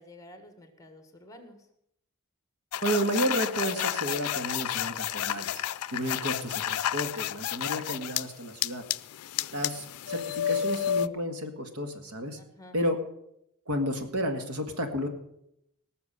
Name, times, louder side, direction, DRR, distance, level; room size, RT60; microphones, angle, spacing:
voice 1, 0.0-1.7 12.3-12.8, left 1 dB, 15° left, 7 dB, 1.6 m, -51 dB
sound 1, 2.7-8.2 8.6-11.1, left 10 dB, 85° left, 0.4 m, -31 dB
voice 2, 2.8-5.6 5.9-8.8 9.5-12.4 12.7-13.0 13.7-15.1, equal, 80° right, 6 dB, 1.9 m, -31 dB
18.0 x 6.9 x 6.8 m, 0.77 s
head